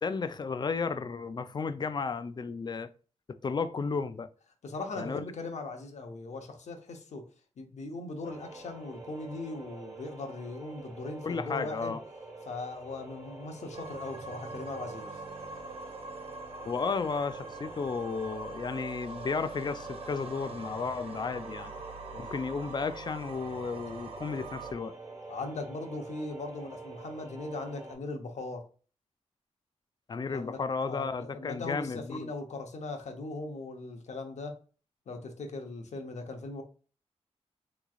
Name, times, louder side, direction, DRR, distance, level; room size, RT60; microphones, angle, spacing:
voice 1, 0.0-2.9 3.4-4.3 5.0-5.2 11.2-12.0 16.7-21.7 22.2-25.0 30.1-32.3, left 5 dB, 40° left, 0.3 m, -33 dB
voice 2, 4.6-7.3 7.6-12.0 12.5-15.2 22.1-22.3 25.3-28.7 30.3-34.6 35.1-36.6, left 3 dB, 80° left, 0.8 m, -39 dB
sound 1, 8.2-28.0, right 3 dB, 30° right, 1.2 m, -47 dB
sound 2, 13.7-24.7, right 3 dB, 55° right, 0.5 m, -44 dB
3.6 x 3.1 x 2.3 m
wide cardioid pair, 100°, 12 cm